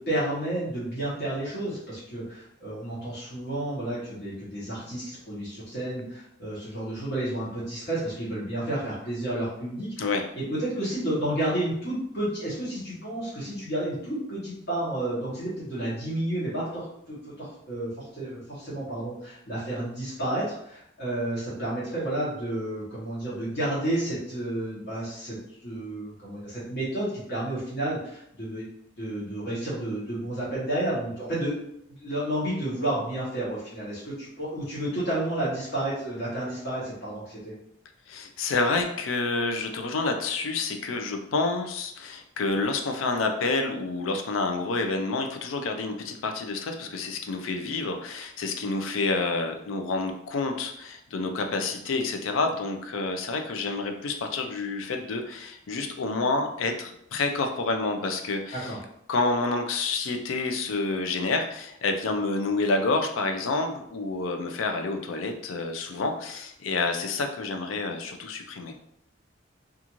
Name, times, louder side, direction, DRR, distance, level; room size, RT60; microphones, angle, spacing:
voice 1, 0.0-28.6 29.0-31.6 31.9-37.5 58.5-58.8, right 1 dB, 55° left, -9 dB, 1.0 m, -31 dB
voice 2, 38.1-58.7 59.1-68.7, left 3 dB, 90° left, 5 dB, 0.4 m, -28 dB
2.5 x 2.4 x 2.9 m, 0.74 s
head